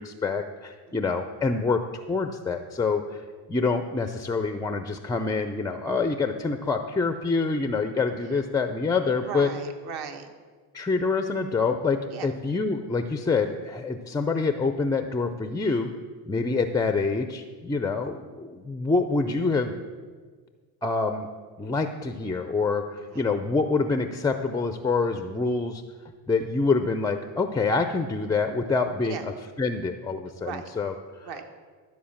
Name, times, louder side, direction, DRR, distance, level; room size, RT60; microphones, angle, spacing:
voice 1, 0.0-9.5 10.7-15.9 16.3-19.7 20.8-21.3 21.6-25.8 26.3-29.2 29.6-31.3, left 4 dB, 10° left, 8 dB, 0.4 m, -26 dB
voice 2, 9.2-10.3 12.1-12.3 23.0-23.3 29.0-29.3 30.4-30.7 31.2-31.4, right 6 dB, 50° right, 6 dB, 1.4 m, -37 dB
12.5 x 4.6 x 7.2 m, 1.5 s
supercardioid pair, 95°, 48 cm